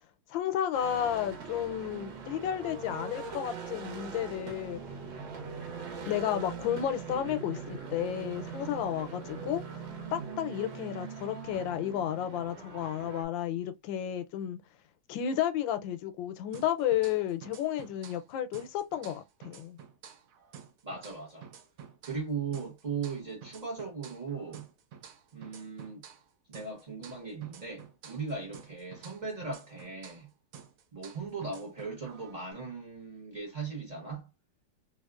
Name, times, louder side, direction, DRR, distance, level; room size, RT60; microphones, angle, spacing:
voice 1, 0.3-4.8 6.0-9.8 10.1-14.6 15.1-19.8, left 10 dB, 85° left, 1.3 m, -32 dB
sound 1, 0.7-13.2, right 5 dB, 90° right, 1.6 m, -41 dB
sound 2, 16.5-18.3 18.5-22.3 22.5-26.3 26.5-30.3 30.5-32.5, right 7 dB, 65° right, 0.8 m, -51 dB
voice 2, 20.8-21.5 22.0-24.6 25.3-26.0 26.5-30.3 30.9-34.3, right 4 dB, 30° right, 1.1 m, -38 dB
3.4 x 2.7 x 2.3 m
omnidirectional pair, 2.0 m